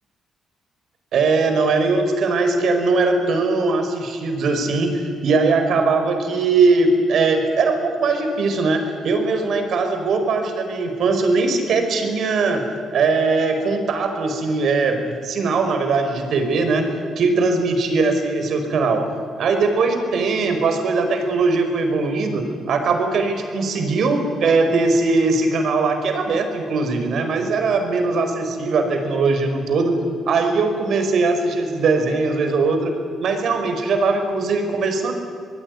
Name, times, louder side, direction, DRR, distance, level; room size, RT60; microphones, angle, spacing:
voice 1, 1.1-12.6 12.9-16.9 17.2-19.1 19.4-30.0 30.3-32.9 33.2-35.1, right 3 dB, 65° right, 6 dB, 5.1 m, -20 dB
26.5 x 20.0 x 9.7 m, 2.4 s
cardioid pair, 90°, 0 cm